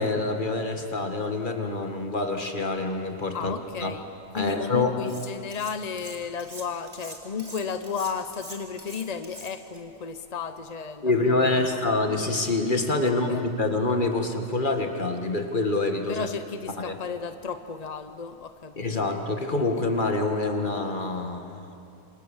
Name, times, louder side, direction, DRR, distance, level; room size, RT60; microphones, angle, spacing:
voice 1, 0.0-3.9 4.3-5.0 11.0-16.3 16.8-17.0 18.8-21.7, left 2 dB, 25° left, 4 dB, 2.0 m, -26 dB
voice 2, 3.3-4.0 4.3-11.8 13.0-13.4 16.1-19.1, left 6 dB, 50° left, 9 dB, 0.4 m, -34 dB
Cutlery silverware, 5.0-5.7 6.0-9.8, right 1 dB, 25° right, 3.3 m, -43 dB
28.0 x 26.0 x 7.3 m, 2.7 s
omnidirectional pair, 2.0 m